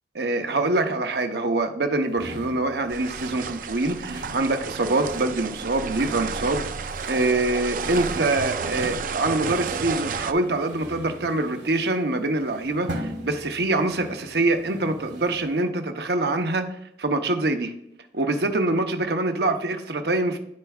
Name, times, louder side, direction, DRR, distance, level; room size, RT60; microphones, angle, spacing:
voice 1, 0.1-16.7 17.0-17.7 18.1-20.4, right 2 dB, 65° right, 7 dB, 0.8 m, -25 dB
sound 1, 2.1-15.6, right 1 dB, 90° right, 1.8 m, -40 dB
sound 2, 2.9-10.3, right 5 dB, 50° right, 0.4 m, -31 dB
13.5 x 4.7 x 2.3 m, 0.78 s
head